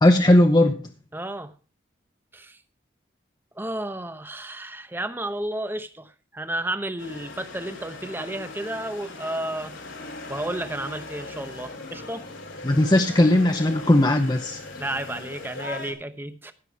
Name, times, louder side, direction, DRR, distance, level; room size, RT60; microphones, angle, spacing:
voice 1, 0.0-0.8 12.6-14.6, left 1 dB, 20° left, 5 dB, 0.7 m, -18 dB
voice 2, 1.1-1.5 2.3-2.6 3.5-9.7 10.3-12.3 14.8-16.5, right 1 dB, 10° right, 10 dB, 0.8 m, -32 dB
sound 1, 7.0-15.9, left 3 dB, 85° left, 3.1 m, -39 dB
15.5 x 6.8 x 4.6 m, 0.36 s
head